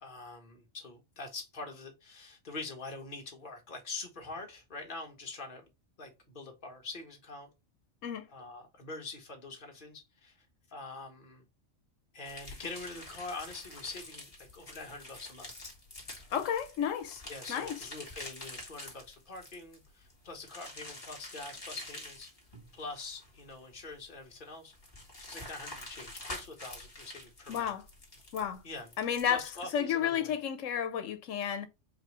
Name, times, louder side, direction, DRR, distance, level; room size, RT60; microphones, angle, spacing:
voice 1, 0.0-5.7 6.0-7.5 8.3-11.4 12.1-15.5 17.3-22.3 22.7-24.7 25.3-27.7 28.6-28.9 29.2-30.3, left 3 dB, 45° left, 1.4 m, -44 dB
sound 1, 12.3-29.7, left 1 dB, 30° left, 1.8 m, -47 dB
voice 2, 16.3-17.2 17.5-17.8 27.5-27.8 28.3-28.6 29.0-29.5 29.7-31.7, left 9 dB, 80° left, 1.1 m, -32 dB
4.7 x 3.0 x 3.0 m
omnidirectional pair, 1.3 m